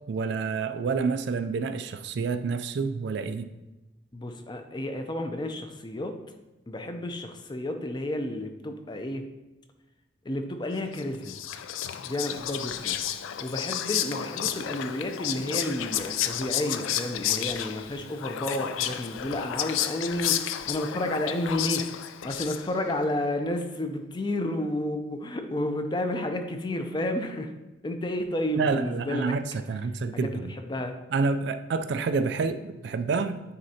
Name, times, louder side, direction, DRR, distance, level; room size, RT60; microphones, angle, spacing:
voice 1, 0.1-3.5 28.6-30.5 31.1-33.4, right 4 dB, 60° right, 10 dB, 0.3 m, -28 dB
voice 2, 4.1-6.1 6.7-9.3 10.2-11.4 12.0-13.0 13.4-21.9 22.2-27.5 27.8-29.4 30.1-30.9, left 1 dB, 25° left, 6 dB, 0.5 m, -31 dB
Whispering, 10.9-22.9, left 10 dB, 85° left, 0.4 m, -31 dB
9.5 x 3.9 x 2.8 m, 1.1 s
head